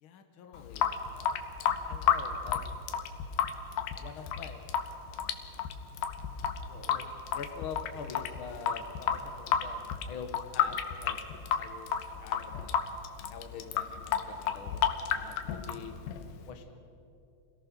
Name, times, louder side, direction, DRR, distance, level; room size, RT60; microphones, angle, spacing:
voice 1, 0.0-2.6 3.9-4.6 6.6-7.1 7.3-9.8 10.1-12.7 13.3-14.8 15.1-15.9 16.4-16.9, left 6 dB, 65° left, 6 dB, 1.3 m, -45 dB
Water tap faucet / Sink (filling or washing) / Drip, 0.5-16.5, left 9 dB, 90° left, 2.9 m, -32 dB
26.5 x 17.5 x 6.1 m, 2.7 s
omnidirectional pair, 4.1 m